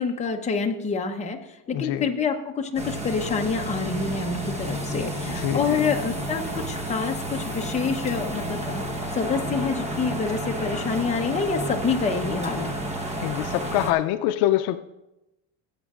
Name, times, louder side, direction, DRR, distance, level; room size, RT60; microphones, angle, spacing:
voice 1, 0.0-1.4 1.7-8.8 9.1-12.7, left 5 dB, 15° left, 2 dB, 0.9 m, -27 dB
voice 2, 1.7-2.1 5.2-5.8 13.2-14.8, left 13 dB, 70° left, 10 dB, 0.6 m, -25 dB
sound 1, 2.7-13.9, right 1 dB, 15° right, 1.1 m, -31 dB
18.0 x 8.6 x 2.5 m, 0.94 s
cardioid pair, 145°, 40 cm